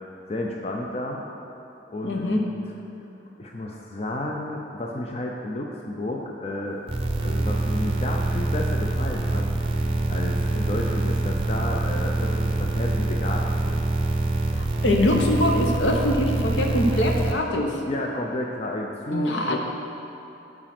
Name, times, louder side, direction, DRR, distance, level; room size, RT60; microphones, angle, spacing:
voice 1, 0.3-1.2 1.9-2.5 3.4-6.8 7.2-9.4 10.1-13.9 17.8-19.6, left 1 dB, 35° left, 0 dB, 0.5 m, -31 dB
voice 2, 2.0-2.4 14.6-17.8 19.1-19.6, left 1 dB, 70° left, 1 dB, 1.0 m, -23 dB
sound 1, 6.9-17.3, right 2 dB, 30° right, 0.6 m, -25 dB
9.2 x 4.9 x 5.9 m, 2.8 s
head